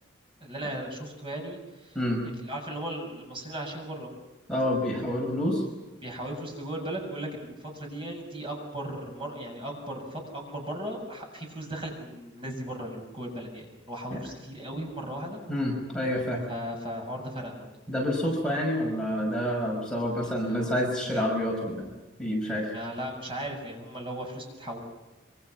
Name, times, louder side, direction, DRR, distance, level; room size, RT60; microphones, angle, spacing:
voice 1, 0.4-2.0 2.4-4.1 6.0-15.4 16.5-17.7 20.2-21.2 22.6-24.8, right 1 dB, 25° right, 1 dB, 7.1 m, -37 dB
voice 2, 4.5-5.6 14.1-14.2 15.5-16.4 17.9-21.9 22.2-22.7, equal, 5° left, -2 dB, 5.7 m, -28 dB
26.5 x 26.0 x 6.0 m, 1.1 s
head